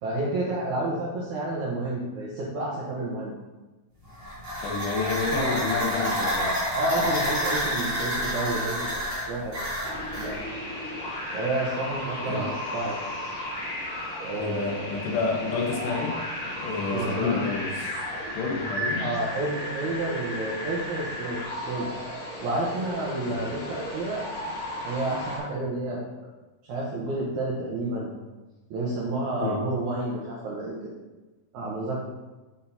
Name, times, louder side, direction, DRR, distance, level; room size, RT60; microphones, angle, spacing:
voice 1, 0.0-3.3 5.3-5.6 6.7-9.7 10.1-10.4 11.3-13.0 14.2-14.9 16.9-17.4 19.0-21.9 22.4-24.2 24.8-26.0 26.7-28.1 28.7-30.9 31.5-32.0, right 2 dB, 85° right, -5 dB, 1.7 m, -30 dB
sound 1, 4.0-10.3, equal, 30° right, 1.0 m, -28 dB
voice 2, 4.6-6.6 7.0-7.1 12.3-12.4 14.3-16.2 16.5-17.9 18.3-19.1 23.2-23.4 29.4-29.6, left 4 dB, 75° left, -1 dB, 3.2 m, -29 dB
sound 2, 9.8-25.4, left 1 dB, 55° left, 1.7 m, -34 dB
8.4 x 5.5 x 2.8 m, 1.2 s
omnidirectional pair, 5.0 m